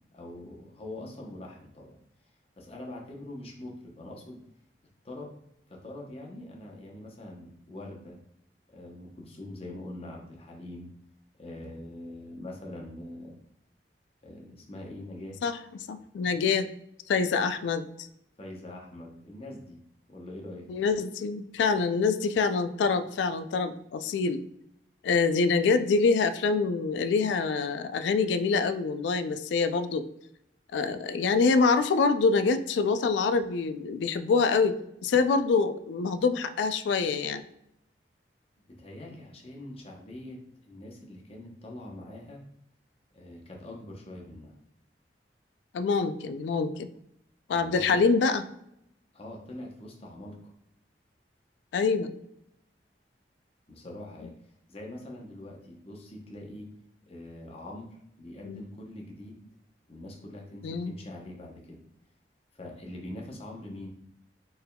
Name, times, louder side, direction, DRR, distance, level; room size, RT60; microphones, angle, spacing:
voice 1, 0.1-2.0 2.6-4.4 5.0-5.3 5.7-8.2 8.7-10.9 11.3-13.4 14.2-15.4 18.4-19.8 20.1-20.7 38.7-42.4 43.1-44.6 47.5-48.0 49.1-50.5 53.7-54.3 54.7-56.7 57.1-59.4 59.9-61.8 62.5-63.9, left 1 dB, 35° left, 0 dB, 0.7 m, -43 dB
voice 2, 15.9-16.7 17.1-17.9 20.7-24.4 25.0-30.1 30.7-37.4 45.7-46.9 47.5-48.4 51.7-52.1 58.4-58.6 60.6-60.9, left 4 dB, 85° left, 11 dB, 0.3 m, -25 dB
4.4 x 3.4 x 2.2 m, 0.78 s
head